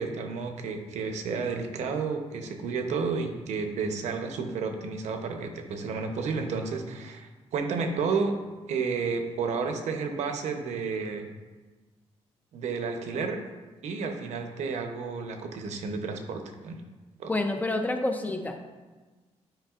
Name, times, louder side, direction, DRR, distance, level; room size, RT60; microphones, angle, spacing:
voice 1, 0.0-8.3 8.7-11.2 12.5-13.4 13.8-16.8 17.2-17.3, right 5 dB, 85° right, 5 dB, 0.8 m, -31 dB
voice 2, 17.3-18.7, left 2 dB, 15° left, 5 dB, 0.5 m, -28 dB
8.9 x 5.2 x 2.4 m, 1.3 s
wide cardioid pair, 165°, 11 cm